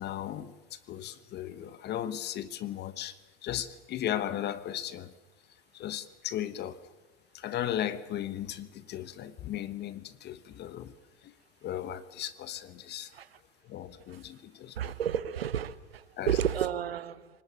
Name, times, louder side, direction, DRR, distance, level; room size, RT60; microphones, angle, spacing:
voice 1, 0.0-5.1 5.7-6.9 7.3-10.9 11.2-11.3 11.6-13.1 13.6-15.0 16.2-16.4, left 11 dB, 35° left, 1.3 m, -36 dB
voice 2, 14.8-17.3, right 9 dB, 80° right, 1.3 m, -31 dB
26.0 x 19.0 x 9.3 m
hypercardioid pair, 100°, 30 cm